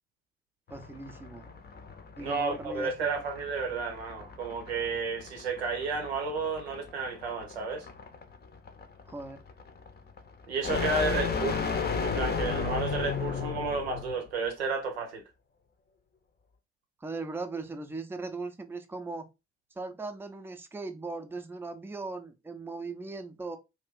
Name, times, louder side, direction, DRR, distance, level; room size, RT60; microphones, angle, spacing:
sound 1, 0.7-14.2, left 5 dB, 30° left, 0.7 m, -34 dB
voice 1, 0.7-1.5 2.2-2.9 9.1-9.4 17.0-19.3 19.8-23.6, right 3 dB, 5° right, 0.5 m, -38 dB
voice 2, 2.2-7.9 10.5-11.6 12.0-15.2, right 4 dB, 85° right, 0.6 m, -32 dB
2.7 x 2.4 x 3.5 m
figure-of-eight pair, 40°, 31 cm